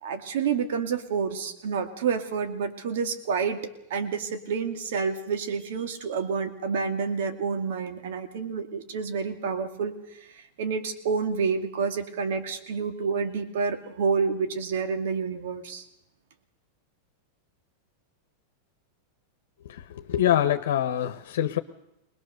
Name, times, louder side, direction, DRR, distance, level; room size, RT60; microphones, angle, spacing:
voice 1, 0.0-3.6 3.9-15.8, right 5 dB, 75° right, 7 dB, 2.3 m, -29 dB
voice 2, 19.6-21.6, left 11 dB, 80° left, 6 dB, 1.1 m, -25 dB
21.5 x 20.5 x 6.7 m, 0.84 s
hypercardioid pair, 120°, 0 cm